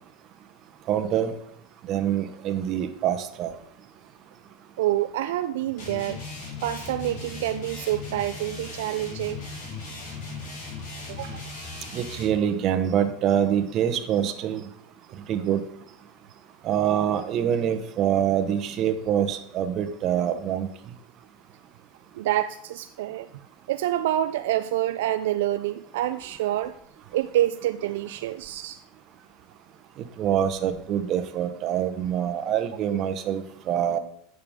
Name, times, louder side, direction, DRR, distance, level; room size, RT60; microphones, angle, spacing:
voice 1, 0.9-1.3 1.9-3.5 11.9-14.6 15.3-15.6 16.6-20.7 30.2-34.0, right 9 dB, 45° right, 9 dB, 0.9 m, -25 dB
voice 2, 4.8-6.2 6.6-9.4 11.1-11.5 22.1-23.3 23.7-26.7 27.1-28.8, right 13 dB, 80° right, 10 dB, 0.3 m, -27 dB
sound 1, 5.8-12.4, left 3 dB, 65° left, 3.8 m, -38 dB
8.9 x 6.6 x 3.6 m, 0.71 s
supercardioid pair, 115°, 0 cm